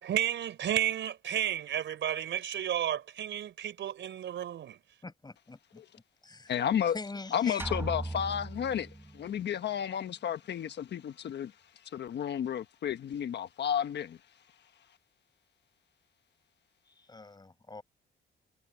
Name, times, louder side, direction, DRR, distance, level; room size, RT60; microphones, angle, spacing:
voice 1, 0.0-4.8, right 10 dB, 70° right, 4.0 m, -32 dB
voice 2, 5.0-5.8 6.2-6.5 6.9-7.7 16.9-17.8, left 3 dB, 20° left, 7.0 m, -43 dB
voice 3, 6.5-7.0 7.3-11.5 11.8-14.2, left 9 dB, 60° left, 1.2 m, -32 dB
sound 1, 7.6-9.4, right 2 dB, 10° right, 1.4 m, -38 dB
cardioid pair, 90°, 20 cm